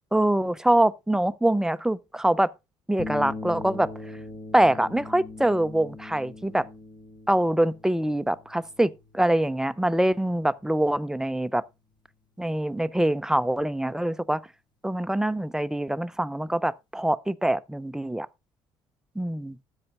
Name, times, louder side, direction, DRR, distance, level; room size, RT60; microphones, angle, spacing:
voice 1, 0.1-2.5 2.9-3.9 4.5-6.7 7.3-11.6 12.4-14.4 14.8-18.3 19.2-19.6, right 1 dB, 5° right, 0.5 m, -24 dB
sound 1, 3.0-11.5, left 3 dB, 30° left, 1.3 m, -41 dB
13.0 x 8.9 x 2.4 m
figure-of-eight pair, 50°, 16 cm